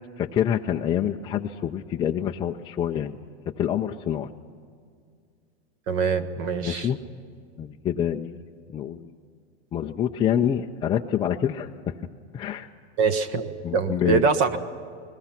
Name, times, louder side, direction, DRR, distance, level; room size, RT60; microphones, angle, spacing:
voice 1, 0.2-3.2 3.6-4.3 6.6-7.0 7.6-8.4 8.7-9.1 9.7-11.9 12.3-12.7 13.6-14.2, left 9 dB, 15° left, 1 dB, 0.5 m, -26 dB
voice 2, 5.9-6.9 13.0-14.6, right 5 dB, 40° right, 11 dB, 1.4 m, -24 dB
29.5 x 20.5 x 5.9 m, 2.2 s
supercardioid pair, 140°, 33 cm